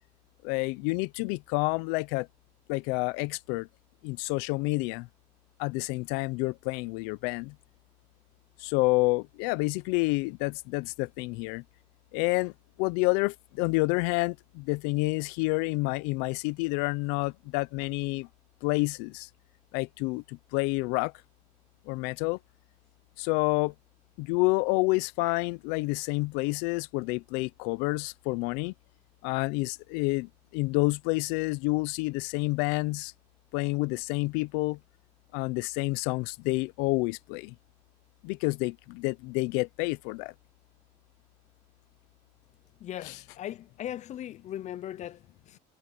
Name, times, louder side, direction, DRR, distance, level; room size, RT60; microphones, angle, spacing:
voice 1, 0.4-2.3 2.7-3.7 4.0-5.1 5.6-7.5 8.6-11.6 12.1-12.5 12.8-18.3 18.6-19.3 19.7-21.1 21.9-22.4 23.2-23.7 24.2-28.7 29.2-33.1 33.5-34.8 35.3-37.5 38.2-40.3 43.1-43.2, left 25 dB, 85° left, 0.7 m, -29 dB
voice 2, 42.8-45.6, left 11 dB, 45° left, 0.6 m, -39 dB
supercardioid pair, 105°, 16 cm